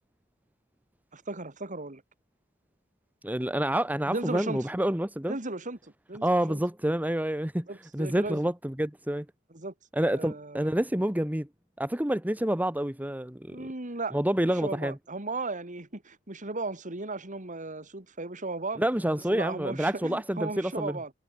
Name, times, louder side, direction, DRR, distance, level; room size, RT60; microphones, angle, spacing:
voice 1, 1.1-2.0 4.0-4.7 5.3-6.6 7.7-8.4 9.5-9.7 10.1-10.7 13.5-14.2 14.4-18.8 19.3-21.1, right 3 dB, 40° right, 2.9 m, -36 dB
voice 2, 3.2-5.4 6.2-7.7 7.9-9.3 9.9-11.5 11.8-13.7 14.1-15.0 18.8-21.0, right 1 dB, 10° right, 1.3 m, -28 dB
head